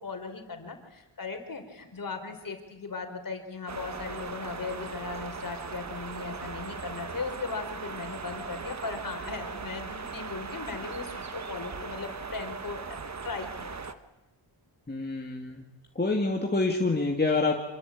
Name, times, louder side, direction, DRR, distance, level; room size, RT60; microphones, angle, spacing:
voice 1, 0.0-12.8 13.2-13.8, left 4 dB, 45° left, 6 dB, 4.4 m, -38 dB
sound 1, 3.7-13.9, right 5 dB, 35° right, 1.4 m, -39 dB
voice 2, 14.9-15.6 16.0-17.6, left 3 dB, 20° left, 0 dB, 2.4 m, -27 dB
26.5 x 24.0 x 8.6 m, 1.0 s
wide cardioid pair, 140°, 46 cm